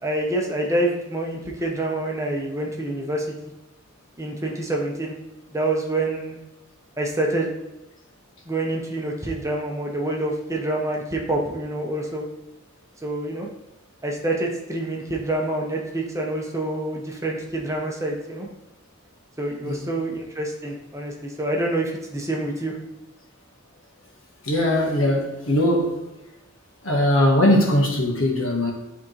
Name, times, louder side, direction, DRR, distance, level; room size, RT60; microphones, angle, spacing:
voice 1, 0.0-3.3 4.2-5.1 5.5-6.4 7.0-7.5 8.5-12.2 13.0-13.5 14.0-18.5 19.4-22.7, right 1 dB, 15° right, 0 dB, 0.8 m, -27 dB
voice 2, 24.4-26.1 26.8-28.7, left 1 dB, 70° left, -1 dB, 1.5 m, -20 dB
10.5 x 3.6 x 3.2 m, 0.96 s
head